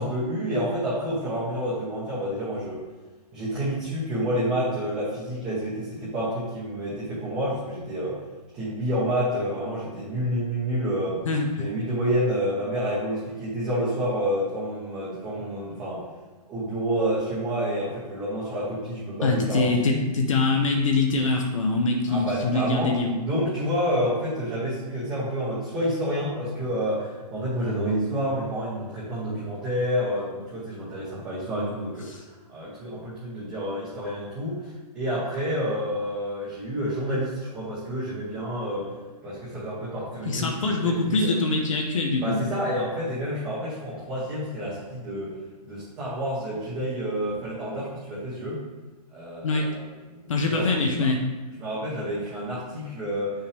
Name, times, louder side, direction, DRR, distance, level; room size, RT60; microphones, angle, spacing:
voice 1, 0.0-2.8 3.3-8.2 8.5-11.2 11.6-16.0 16.5-20.0 22.1-22.9 23.2-32.1 32.5-34.6 34.9-38.9 39.2-41.4 42.2-45.3 45.6-48.6 49.1-51.1 51.6-53.3, equal, 10° right, -8 dB, 1.0 m, -29 dB
voice 2, 11.2-11.7 19.2-23.2 32.1-32.2 40.2-42.4 49.4-49.6 50.3-51.2, left 3 dB, 50° left, 1 dB, 0.9 m, -24 dB
7.7 x 5.7 x 3.4 m, 1.2 s
hypercardioid pair, 175°, 21 cm